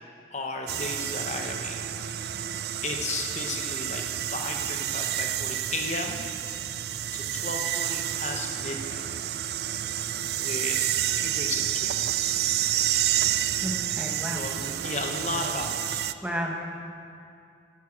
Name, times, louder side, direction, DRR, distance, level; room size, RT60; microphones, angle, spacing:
voice 1, 0.3-1.8 2.8-6.2 7.1-9.1 10.4-11.9 14.3-16.1, left 3 dB, 40° left, 2 dB, 0.9 m, -34 dB
sound 1, 0.7-16.1, right 11 dB, 60° right, 0.4 m, -29 dB
voice 2, 13.6-14.4 16.2-16.7, equal, 5° right, 0 dB, 1.2 m, -32 dB
11.0 x 8.3 x 8.7 m, 2.4 s
head